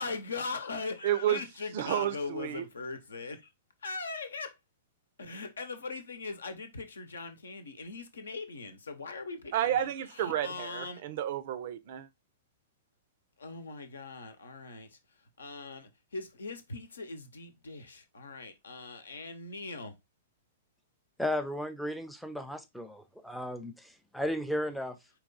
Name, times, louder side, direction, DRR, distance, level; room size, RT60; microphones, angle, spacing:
voice 1, 0.0-3.5 3.8-4.6 5.2-11.0 13.4-15.0 15.4-19.9, left 4 dB, 70° left, 0.9 m, -40 dB
voice 2, 1.0-1.4 1.7-2.6 9.5-12.1, right 11 dB, 50° right, 0.5 m, -31 dB
voice 3, 21.2-25.0, left 1 dB, ahead, 0.5 m, -35 dB
4.7 x 2.9 x 3.8 m
figure-of-eight pair, 105°, 0 cm